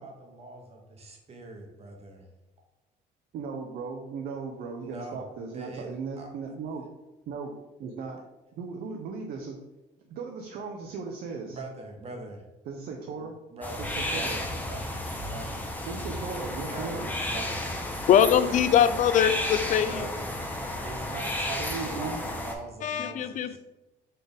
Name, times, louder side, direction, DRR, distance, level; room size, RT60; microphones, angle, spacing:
voice 1, 0.0-2.3 4.8-5.9 6.2-6.3 11.5-12.4 13.5-15.8 16.6-17.8 19.7-20.5 20.8-23.6, right 2 dB, 35° right, 2 dB, 0.9 m, -42 dB
voice 2, 3.3-6.8 7.3-7.5 7.8-8.2 8.6-9.6 10.1-11.6 12.7-13.3 13.8-14.4 15.9-17.1 21.6-22.2, right 5 dB, 65° right, 2 dB, 0.6 m, -37 dB
sound 1, 13.6-22.5, left 1 dB, 10° left, 0.7 m, -33 dB
voice 3, 18.1-20.0 22.8-23.6, left 9 dB, 50° left, 12 dB, 0.4 m, -22 dB
4.1 x 3.8 x 3.4 m, 1.0 s
cardioid pair, 110°, 17 cm